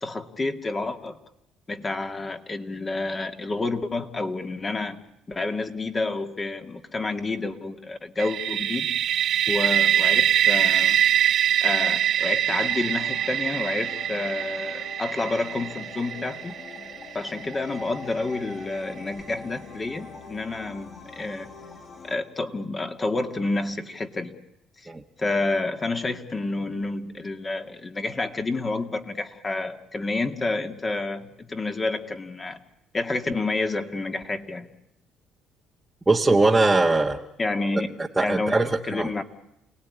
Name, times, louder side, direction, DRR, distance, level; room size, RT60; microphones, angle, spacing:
voice 1, 0.0-1.2 1.7-5.0 5.3-11.0 11.6-16.6 17.1-21.5 22.0-24.3 25.2-32.6 32.9-34.7 37.4-39.2, left 2 dB, 25° left, 6 dB, 2.3 m, -29 dB
sound 1, 8.2-17.9, right 10 dB, 65° right, 1.3 m, -24 dB
sound 2, 12.6-22.2, left 4 dB, 45° left, 6.7 m, -44 dB
voice 2, 36.1-37.2 38.1-39.1, right 2 dB, 10° right, -1 dB, 1.5 m, -21 dB
28.5 x 19.0 x 9.8 m, 0.86 s
cardioid pair, 105°, 0 cm